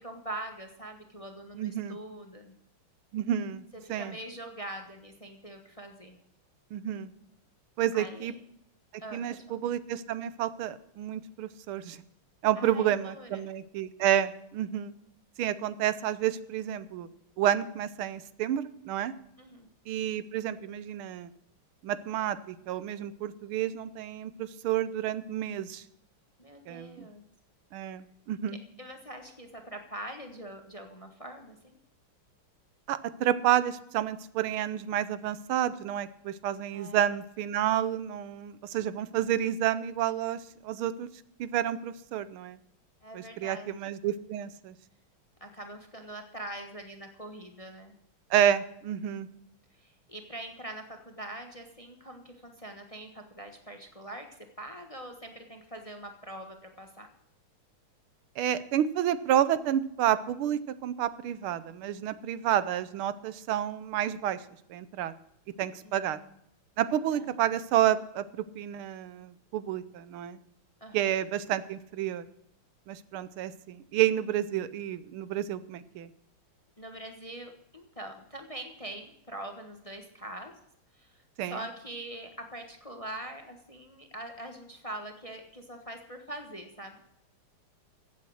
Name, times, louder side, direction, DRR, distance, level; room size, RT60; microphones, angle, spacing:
voice 1, 0.0-2.5 3.8-6.2 7.9-8.4 9.0-9.4 12.6-13.5 19.4-19.7 26.4-27.2 28.8-31.8 36.7-37.1 43.0-43.8 45.4-47.9 49.7-54.3 54.6-57.1 65.8-66.3 67.1-67.3 70.8-71.1 76.8-80.6 80.9-87.1, right 1 dB, 20° left, 5 dB, 1.0 m, -43 dB
voice 2, 1.6-2.0 3.1-3.6 3.9-4.1 6.7-7.1 7.8-8.3 9.1-12.0 12.4-14.9 15.4-17.1 17.4-19.1 19.9-21.3 21.8-25.8 26.7-27.1 27.7-28.6 32.9-41.1 41.4-42.6 43.1-44.7 48.3-49.3 58.4-64.4 64.7-65.1 65.6-66.2 66.8-70.4 70.9-72.3 72.9-76.1 81.4-81.6, right 11 dB, 80° right, 15 dB, 1.6 m, -30 dB
15.0 x 8.4 x 6.3 m, 0.74 s
omnidirectional pair, 2.3 m